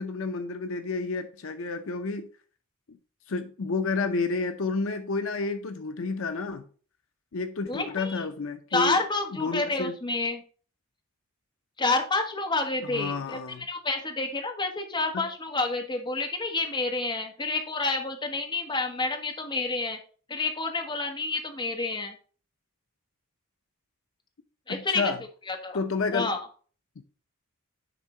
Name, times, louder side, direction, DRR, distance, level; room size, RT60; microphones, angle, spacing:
voice 1, 0.0-2.3 2.9-3.0 3.3-6.7 7.3-9.0 9.3-10.0 12.8-13.7 15.1-15.3 24.7-25.2 25.7-26.4, left 3 dB, 65° left, 0.6 m, -30 dB
voice 2, 7.7-8.1 8.7-10.4 11.8-13.4 13.7-20.0 20.3-22.1 24.7-25.1 25.5-25.8 26.1-26.4, left 3 dB, 20° left, 1.2 m, -29 dB
10.0 x 3.6 x 4.3 m
head